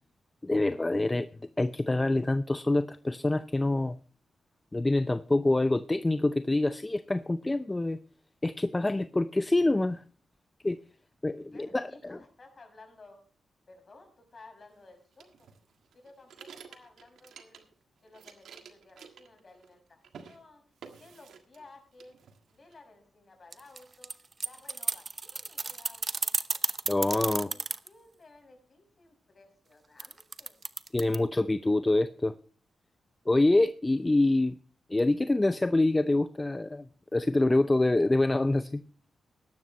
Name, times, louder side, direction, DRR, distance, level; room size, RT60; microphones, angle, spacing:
voice 1, 0.4-1.3 1.6-4.0 4.7-8.0 8.4-10.0 10.6-10.8 11.2-11.9 26.9-27.5 30.9-32.3 33.3-34.6 34.9-36.9 37.1-38.8, left 2 dB, 20° left, 0.6 m, -26 dB
voice 2, 11.5-13.2 13.7-15.5 15.9-17.7 18.0-20.6 20.9-24.1 24.4-26.4 26.9-30.6, left 3 dB, 45° left, 6.3 m, -55 dB
sound 1, 15.2-17.8 18.1-19.8 20.0-20.4 20.8-21.7 22.0-22.8, right 6 dB, 75° right, 1.6 m, -51 dB
sound 2, 23.5-27.9 30.0-31.2, right 4 dB, 40° right, 0.8 m, -32 dB
16.5 x 12.0 x 3.1 m
supercardioid pair, 50°, 0 cm